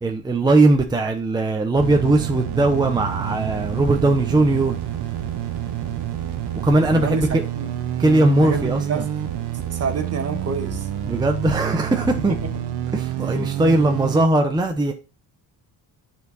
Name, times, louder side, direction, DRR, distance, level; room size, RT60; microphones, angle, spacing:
voice 1, 0.0-4.8 6.6-7.4 8.0-9.0 11.1-12.4 12.9-14.9, right 2 dB, 10° right, 0.7 m, -19 dB
sound 1, 1.8-14.3, right 11 dB, 90° right, 1.0 m, -28 dB
sound 2, 3.0-12.6, left 6 dB, 50° left, 1.5 m, -43 dB
voice 2, 6.9-7.7 8.3-9.1 9.6-10.9 13.4-14.0, right 5 dB, 40° right, 1.2 m, -29 dB
9.8 x 4.6 x 4.0 m
cardioid pair, 155°, 40 cm